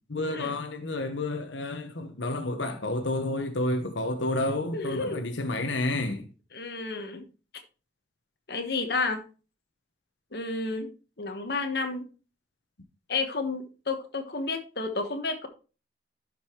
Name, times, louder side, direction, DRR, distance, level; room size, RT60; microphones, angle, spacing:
voice 1, 0.1-6.3, left 2 dB, 90° left, 1.1 m, -30 dB
voice 2, 4.7-5.2 6.5-7.2 8.5-9.2 10.3-10.9 11.2-12.0 13.1-15.5, left 3 dB, 55° left, 1.2 m, -31 dB
11.5 x 5.3 x 3.0 m
head